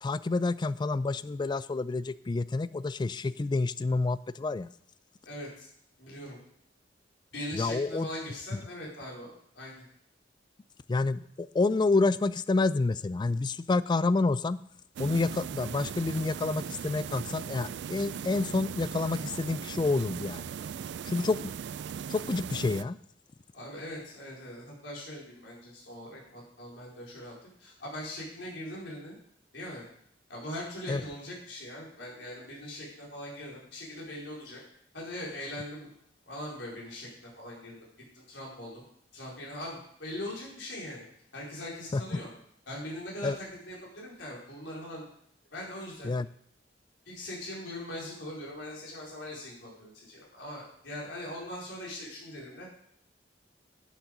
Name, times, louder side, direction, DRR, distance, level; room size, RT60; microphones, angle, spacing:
voice 1, 0.0-4.7 7.5-8.1 8.5-8.6 10.9-14.6 15.0-20.5 21.1-21.5 22.1-23.0 30.9-31.0 41.9-42.0 43.2-43.4 46.0-46.3, left 3 dB, 25° left, 17 dB, 0.3 m, -28 dB
voice 2, 5.2-5.7 6.0-6.4 7.3-9.8 23.5-29.2 29.5-29.8 30.3-34.6 34.9-35.9 36.3-37.8 38.1-38.8 39.1-41.0 41.3-42.3 42.7-45.1 45.5-46.1 47.1-52.7, left 1 dB, 80° left, -4 dB, 4.6 m, -41 dB
sound 1, 15.0-22.8, right 7 dB, 65° right, 0.3 m, -39 dB
11.5 x 7.3 x 5.4 m, 0.70 s
head